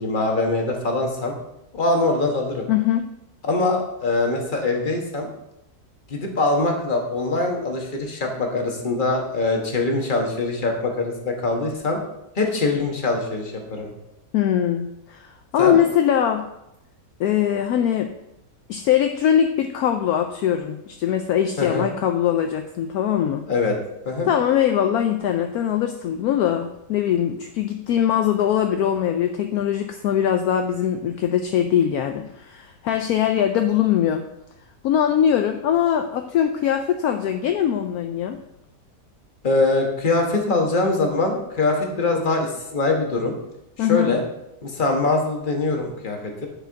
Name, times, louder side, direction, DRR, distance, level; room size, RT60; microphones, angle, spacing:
voice 1, 0.0-1.3 1.7-2.7 3.4-5.3 6.1-12.0 12.3-13.9 15.6-15.8 21.6-21.9 23.5-23.8 24.0-24.3 39.4-43.3 43.8-44.2 44.6-46.5, left 3 dB, 30° left, 1 dB, 1.4 m, -23 dB
voice 2, 2.7-3.1 14.3-16.5 17.2-18.1 18.7-23.4 24.3-34.2 34.8-38.4 43.8-44.2, left 9 dB, 70° left, 6 dB, 1.0 m, -21 dB
10.0 x 4.6 x 4.6 m, 0.86 s
omnidirectional pair, 1.7 m